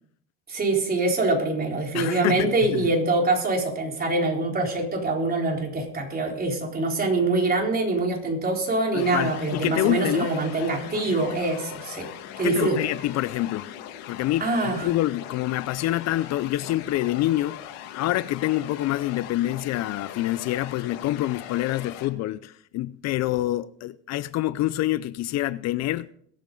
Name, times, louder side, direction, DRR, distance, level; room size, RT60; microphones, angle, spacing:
voice 1, 0.5-12.1 12.4-12.8 14.4-14.9, right 2 dB, 30° right, 3.9 m, -24 dB
voice 2, 1.9-2.9 8.9-10.3 12.4-13.7 14.1-17.6 17.9-26.1, left 15 dB, 55° left, 0.5 m, -26 dB
sound 1, 9.0-22.1, left 10 dB, 85° left, 1.8 m, -40 dB
22.0 x 8.7 x 3.8 m
cardioid pair, 115°, 32 cm